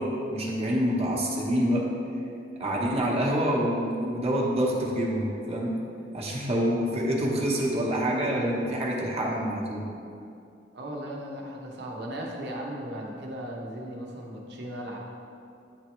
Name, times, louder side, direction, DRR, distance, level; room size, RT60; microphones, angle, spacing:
voice 1, 0.0-1.9 2.6-5.8 6.1-9.9, equal, 35° right, -3 dB, 1.0 m, -27 dB
voice 2, 10.7-15.0, equal, 65° right, -1 dB, 0.9 m, -37 dB
9.9 x 3.4 x 3.0 m, 2.5 s
head